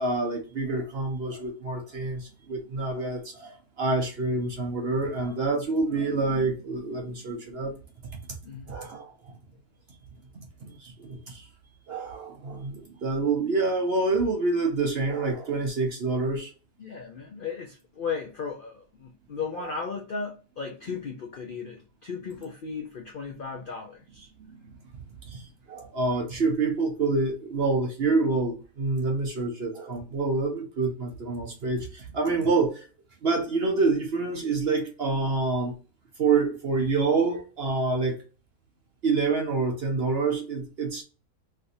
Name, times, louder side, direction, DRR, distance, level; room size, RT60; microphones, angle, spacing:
voice 1, 0.0-7.7 8.7-9.3 10.6-11.4 11.9-16.5 25.3-32.8 33.2-35.7 36.2-38.2 39.0-41.0, right 3 dB, 55° right, 0.7 m, -27 dB
voice 2, 16.8-24.3, left 5 dB, 80° left, 0.4 m, -36 dB
3.3 x 2.6 x 2.6 m
omnidirectional pair, 1.7 m